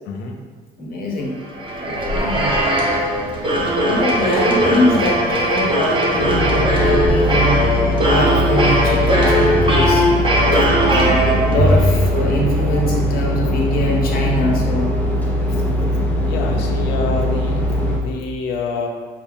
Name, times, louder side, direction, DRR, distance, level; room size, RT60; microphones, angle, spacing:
voice 1, 0.8-1.4 1.8-2.5 3.5-7.6 8.0-10.1 10.5-15.0, left 1 dB, 60° left, -1 dB, 1.0 m, -22 dB
sound 1, 1.4-11.8, equal, 30° right, 0.9 m, -19 dB
sound 2, 4.3-5.4 5.7-6.3 7.0-13.0, equal, 55° right, 0.4 m, -26 dB
sound 3, 6.2-18.0, equal, 10° left, 0.7 m, -20 dB
voice 2, 16.2-17.6 18.0-18.9, left 4 dB, 85° left, 2 dB, 0.6 m, -26 dB
5.6 x 2.3 x 3.5 m, 1.5 s
cardioid pair, 110°, 17 cm